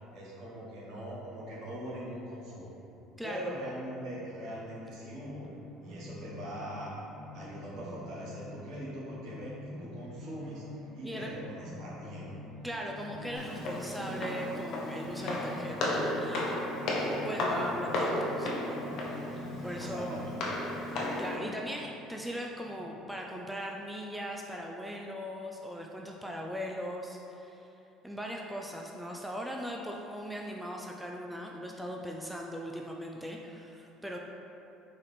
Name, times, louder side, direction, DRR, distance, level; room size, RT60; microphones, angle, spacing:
voice 1, 0.1-2.8 3.2-5.4 5.8-6.9 7.3-12.5 19.6-20.4, equal, 60° right, -6 dB, 1.1 m, -42 dB
voice 2, 3.2-3.6 11.0-11.3 12.6-16.5 17.2-19.0 19.3-20.2 20.9-27.7 28.0-34.2, equal, 5° right, -1 dB, 0.3 m, -39 dB
sound 1, 3.8-23.0, left 2 dB, 35° right, 0.9 m, -47 dB
Walk footsteps, 13.4-21.4, left 1 dB, 65° left, 0.6 m, -34 dB
4.1 x 2.5 x 3.3 m, 2.9 s
hypercardioid pair, 75°, 0 cm